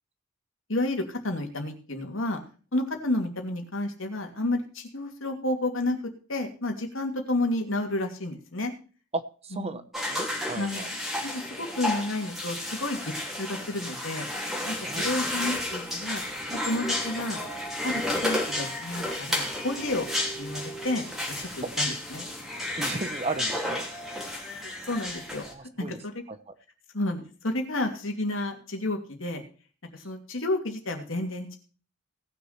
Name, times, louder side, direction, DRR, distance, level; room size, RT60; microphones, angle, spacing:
voice 1, 0.7-2.4 2.7-6.0 6.3-8.7 9.5-9.8 10.5-10.9 11.2-16.2 16.7-17.4 17.8-20.1 20.4-21.1 21.4-22.3 24.5-25.4 25.8-26.2 26.9-29.4 29.9-31.5, left 1 dB, 70° left, 3 dB, 2.7 m, -31 dB
voice 2, 9.1-10.9 14.8-15.1 21.6-21.7 22.8-23.8 25.4-26.0 26.3-26.5, right 3 dB, 30° right, 11 dB, 1.0 m, -35 dB
sound 1, 9.9-25.5, left 1 dB, ahead, 3.0 m, -32 dB
18.5 x 6.6 x 4.4 m, 0.37 s
head